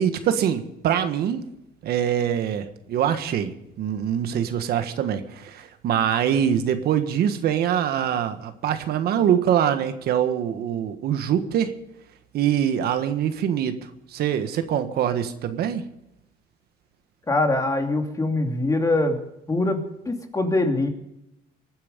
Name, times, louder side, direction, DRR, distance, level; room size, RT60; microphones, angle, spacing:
voice 1, 0.0-1.4 1.8-11.7 12.3-13.8 14.1-15.8, right 9 dB, 70° right, 9 dB, 1.5 m, -24 dB
voice 2, 17.3-19.2 19.5-20.9, left 2 dB, 20° left, 4 dB, 2.7 m, -23 dB
23.5 x 9.6 x 5.3 m, 0.84 s
cardioid pair, 110°, 17 cm